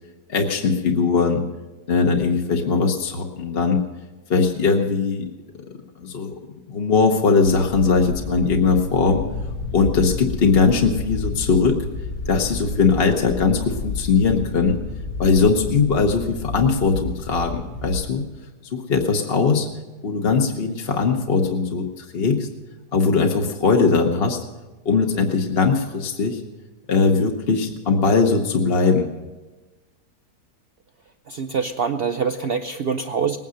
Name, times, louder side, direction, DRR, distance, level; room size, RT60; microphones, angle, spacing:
voice 1, 0.3-1.4 1.9-3.8 4.3-5.3 6.0-6.3 6.7-9.2 9.7-11.8 12.3-14.8 15.2-18.2 18.7-19.7 20.0-22.5 22.9-24.4 24.8-26.4 26.9-29.1, left 4 dB, 40° left, 2 dB, 1.1 m, -20 dB
sound 1, 7.4-18.1, left 3 dB, 90° left, 3.0 m, -31 dB
voice 2, 31.3-33.4, right 6 dB, 80° right, 7 dB, 0.5 m, -24 dB
19.5 x 9.5 x 6.4 m, 1.2 s
omnidirectional pair, 1.8 m